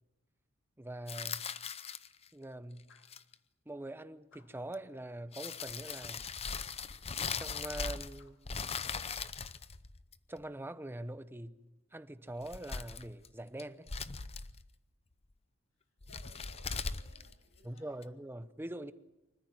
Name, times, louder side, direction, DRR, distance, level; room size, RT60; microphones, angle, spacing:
voice 1, 0.8-1.4 2.3-2.9 3.7-6.3 7.4-8.4 10.3-11.6 11.9-13.9 17.6-18.9, right 1 dB, 10° right, 0.9 m, -43 dB
sound 1, 1.1-2.3 3.0-3.3 4.7-4.8 5.3-8.2 8.4-10.4 12.3-13.3 13.6-14.7 16.0-18.0, left 5 dB, 30° left, 0.7 m, -40 dB
sound 2, 2.9-3.2 4.3-4.7 6.0-6.3 7.2-8.5 8.8-9.1, left 5 dB, 65° left, 1.8 m, -64 dB
voice 2, 16.0-18.2, left 2 dB, 80° left, 6.9 m, -62 dB
25.0 x 14.0 x 9.5 m
head